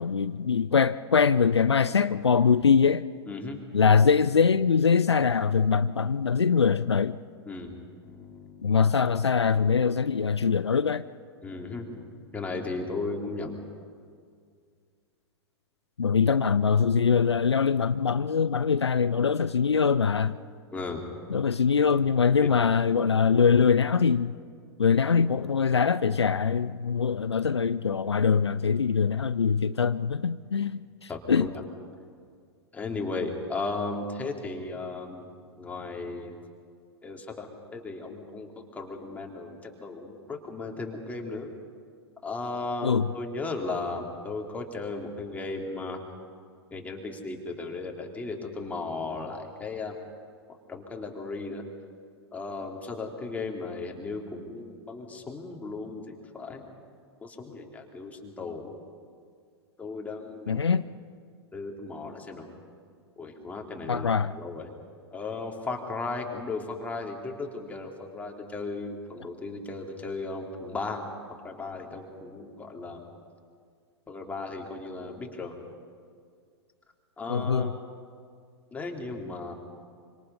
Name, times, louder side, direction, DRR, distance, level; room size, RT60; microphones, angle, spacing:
voice 1, 0.0-3.1 3.7-7.2 8.6-11.0 16.0-20.4 21.3-24.3 24.8-31.5 42.8-43.1 60.5-60.8 63.9-64.3 77.3-77.7, left 6 dB, 75° left, 0.6 m, -23 dB
voice 2, 3.3-3.6 7.5-7.7 8.0-8.8 11.4-13.6 20.7-21.1 22.4-22.6 31.1-31.5 32.7-35.3 35.6-36.3 37.0-41.5 42.2-46.0 46.7-49.9 50.7-51.6 52.3-56.6 57.2-58.7 59.8-60.6 61.5-62.5 63.2-64.1 64.4-64.7 65.1-71.1 71.4-73.0 74.1-75.5 77.2-77.7 78.7-79.5, left 3 dB, 10° left, 3.1 m, -36 dB
26.0 x 25.5 x 5.5 m
figure-of-eight pair, 100°, 14 cm